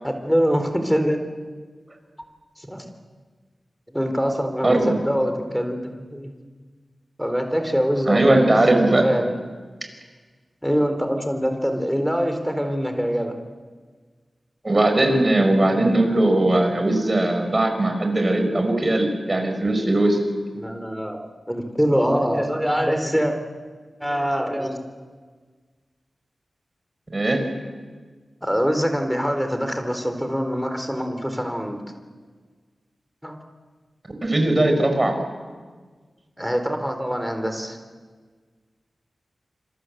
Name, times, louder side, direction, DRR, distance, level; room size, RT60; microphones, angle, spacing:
voice 1, 0.0-1.2 2.6-2.8 3.9-6.3 7.2-9.3 10.6-13.3 20.5-21.2 21.5-23.3 24.0-24.8 28.4-31.8 33.2-33.3 36.4-37.8, equal, ahead, 6 dB, 3.9 m, -24 dB
voice 2, 8.1-9.1 14.6-20.2 27.1-27.4 34.2-35.2, right 1 dB, 30° right, 4 dB, 5.6 m, -19 dB
27.0 x 26.5 x 8.0 m, 1.5 s
wide cardioid pair, 75°, 0 cm